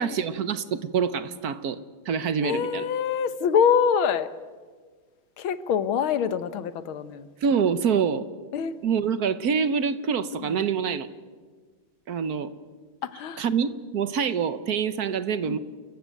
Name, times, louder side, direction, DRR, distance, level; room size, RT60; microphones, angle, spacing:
voice 1, 0.0-2.9 7.4-8.2 8.8-11.1 12.1-12.5 13.4-15.6, right 6 dB, 55° right, 1.2 m, -26 dB
voice 2, 2.4-4.3 5.4-7.3 8.5-8.8 10.3-10.7 13.0-13.5 15.5-15.6, left 7 dB, 85° left, 1.9 m, -25 dB
29.0 x 14.5 x 9.2 m
omnidirectional pair, 2.2 m